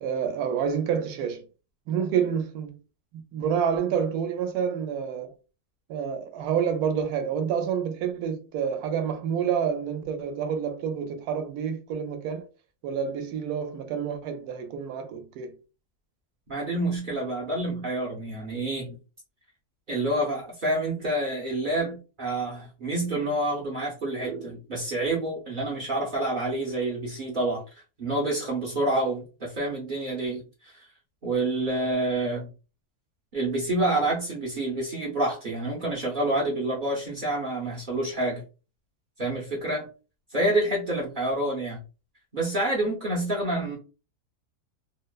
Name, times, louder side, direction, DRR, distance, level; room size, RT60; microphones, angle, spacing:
voice 1, 0.0-1.5 1.9-2.8 3.1-5.3 5.9-12.5 12.8-15.5 41.0-41.1, right 7 dB, 85° right, 1.1 m, -28 dB
voice 2, 16.5-19.0 19.9-27.6 28.0-30.9 31.2-32.5 33.3-38.4 39.2-39.9 40.3-41.8 42.3-43.8, right 1 dB, 45° right, 0.7 m, -28 dB
2.8 x 2.0 x 2.2 m
omnidirectional pair, 1.6 m